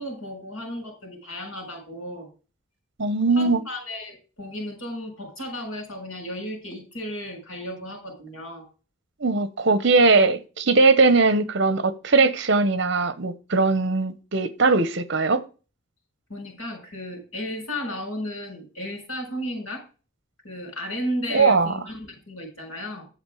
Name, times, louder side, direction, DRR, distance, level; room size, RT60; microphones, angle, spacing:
voice 1, 0.0-2.3 3.4-8.6 16.3-19.8 20.4-23.0, left 1 dB, 80° left, 2 dB, 6.6 m, -34 dB
voice 2, 3.0-3.6 9.2-15.4 21.3-21.8, right 3 dB, 55° right, 14 dB, 1.0 m, -20 dB
8.8 x 7.5 x 4.9 m, 0.35 s
head